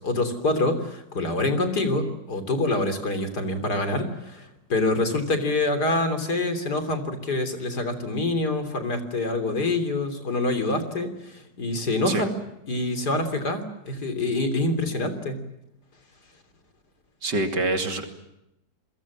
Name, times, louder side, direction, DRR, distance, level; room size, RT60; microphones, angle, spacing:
voice 1, 0.0-12.4 12.7-15.4, left 2 dB, 65° left, 9 dB, 3.9 m, -26 dB
voice 2, 17.2-18.1, right 2 dB, 75° right, 5 dB, 3.4 m, -25 dB
29.5 x 22.0 x 7.5 m, 0.85 s
omnidirectional pair, 1.9 m